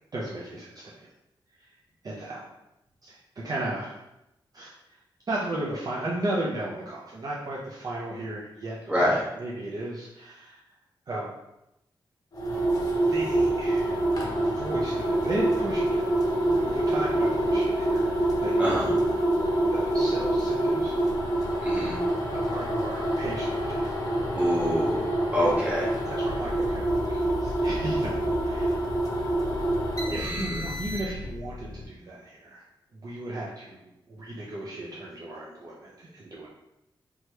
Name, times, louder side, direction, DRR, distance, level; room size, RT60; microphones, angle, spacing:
voice 1, 0.1-1.1 1.6-1.7 2.0-2.5 3.0-4.0 4.5-4.7 5.3-10.6 11.1-11.3 13.0-14.1 14.4-19.1 19.7-21.0 22.4-23.9 25.4-25.6 26.1-28.8 30.1-32.7 33.0-33.8 34.1-36.5, right 1 dB, 45° right, -5 dB, 0.5 m, -35 dB
voice 2, 8.9-9.2 18.6-18.9 21.6-22.0 24.3-25.9 30.2-30.6, equal, 15° right, -7 dB, 1.2 m, -26 dB
sound 1, 12.3-31.3, right 1 dB, 45° left, 0.7 m, -26 dB
sound 2, 26.2-31.9, left 1 dB, 75° left, 0.4 m, -40 dB
2.9 x 2.3 x 3.1 m, 0.88 s
wide cardioid pair, 90°, 9 cm